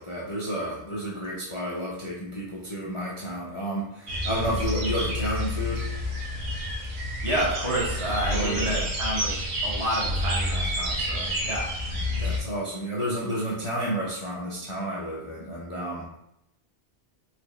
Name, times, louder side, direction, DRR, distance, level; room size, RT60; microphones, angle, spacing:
voice 1, 0.0-5.9 8.3-8.9 12.2-16.2, right 1 dB, 40° left, -6 dB, 0.5 m, -31 dB
sound 1, 4.1-12.4, left 1 dB, 60° right, 1.0 m, -29 dB
voice 2, 7.2-9.3 9.6-11.7, right 1 dB, 30° right, -6 dB, 0.8 m, -29 dB
4.1 x 2.0 x 3.0 m, 0.81 s
omnidirectional pair, 1.1 m